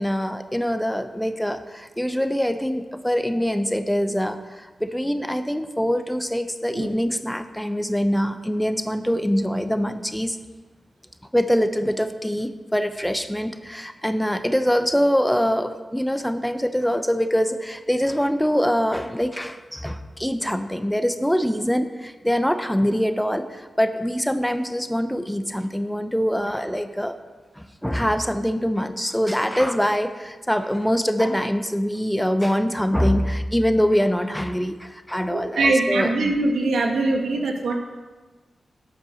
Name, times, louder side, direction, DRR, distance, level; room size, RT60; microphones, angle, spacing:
voice 1, 0.0-10.4 11.3-27.2 27.6-36.1, equal, 5° left, 9 dB, 0.8 m, -24 dB
voice 2, 35.3-37.7, right 2 dB, 85° right, 2 dB, 1.6 m, -22 dB
10.5 x 8.1 x 6.4 m, 1.3 s
cardioid pair, 45°, 0 cm